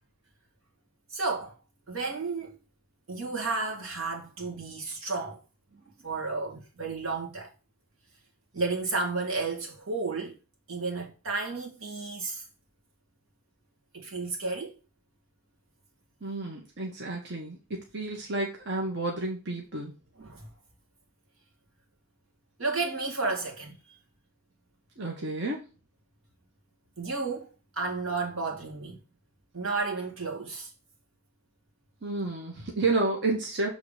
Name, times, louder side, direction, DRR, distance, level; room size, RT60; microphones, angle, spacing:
voice 1, 1.1-1.5 1.9-2.6 3.1-5.4 6.0-7.5 8.5-10.4 10.7-12.4 13.9-14.7 20.2-20.5 22.6-23.8 27.0-27.5 27.7-29.0 29.5-30.7, right 3 dB, 80° right, 2.3 m, -32 dB
voice 2, 16.2-17.6 17.9-19.9 25.0-25.6 32.0-33.7, right 2 dB, 55° right, 1.6 m, -30 dB
7.2 x 3.8 x 5.1 m
head